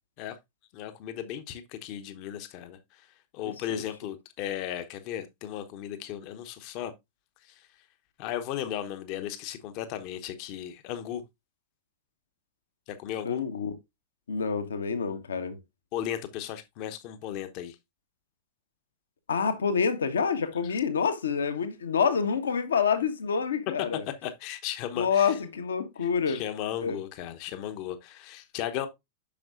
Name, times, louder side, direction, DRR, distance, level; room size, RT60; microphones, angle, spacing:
voice 1, 0.7-3.1 3.3-6.9 7.4-7.7 8.2-11.2 12.9-13.4 15.9-17.8 24.2-25.3 26.0-28.9, left 11 dB, 45° left, 0.9 m, -36 dB
voice 2, 3.4-3.8 13.2-13.7 14.3-15.6 19.3-24.0 25.0-26.4 26.8-27.0, left 6 dB, 70° left, 1.1 m, -27 dB
8.6 x 6.2 x 2.5 m
figure-of-eight pair, 90°, 0 cm